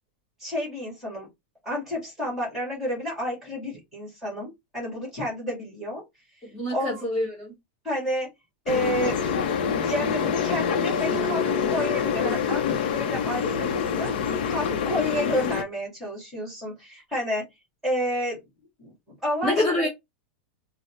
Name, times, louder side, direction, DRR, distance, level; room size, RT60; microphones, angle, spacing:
voice 1, 0.4-1.3 1.6-6.0 6.7-7.0 7.8-8.3 8.7-17.4 17.8-18.4 18.8-18.9 19.2-19.9, equal, 5° right, 1.8 m, -30 dB
voice 2, 6.5-7.5 19.4-19.9, left 1 dB, 10° left, 1.3 m, -26 dB
sound 1, 8.7-15.6, left 6 dB, 50° left, 0.6 m, -26 dB
4.0 x 2.0 x 3.1 m
supercardioid pair, 175°, 6 cm